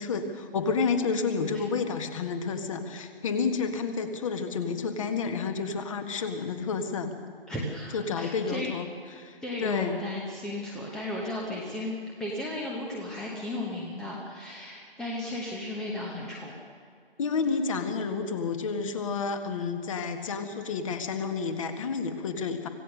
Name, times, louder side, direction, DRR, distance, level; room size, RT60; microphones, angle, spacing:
voice 1, 0.0-7.1 7.9-8.9 9.2-9.9 17.2-22.7, left 5 dB, 35° left, 7 dB, 1.7 m, -30 dB
voice 2, 7.5-8.7 9.4-16.5, left 1 dB, ahead, -3 dB, 0.9 m, -35 dB
25.5 x 16.5 x 6.6 m, 2.2 s
figure-of-eight pair, 145°, 30 cm